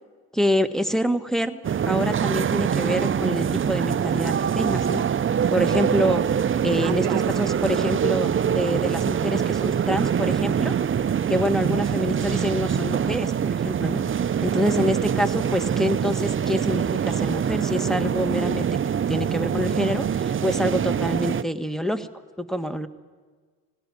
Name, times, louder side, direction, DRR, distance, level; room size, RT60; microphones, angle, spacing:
voice 1, 0.3-5.1 5.5-6.2 6.6-7.0 7.4-10.7 11.3-14.0 14.4-22.1 22.4-22.9, equal, ahead, 6 dB, 1.4 m, -26 dB
sound 1, 1.6-21.4, right 8 dB, 30° right, 0.5 m, -24 dB
voice 2, 6.8-7.9 11.8-12.1, right 14 dB, 70° right, 14 dB, 0.8 m, -36 dB
18.0 x 17.0 x 9.6 m, 1.5 s
hypercardioid pair, 45°, 45 cm